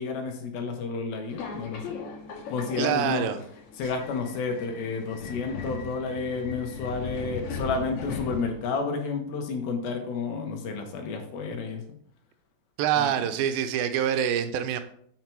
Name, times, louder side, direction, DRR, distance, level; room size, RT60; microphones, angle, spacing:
voice 1, 0.0-2.0 2.5-3.3 3.8-11.8 13.0-13.2, left 4 dB, 80° left, 4 dB, 3.0 m, -31 dB
Subway metro underground, 1.3-8.8, left 4 dB, 65° left, 2.4 m, -38 dB
voice 2, 2.8-3.4 12.8-14.8, right 9 dB, 90° right, 9 dB, 2.4 m, -25 dB
7.4 x 5.8 x 4.6 m, 0.64 s
omnidirectional pair, 4.2 m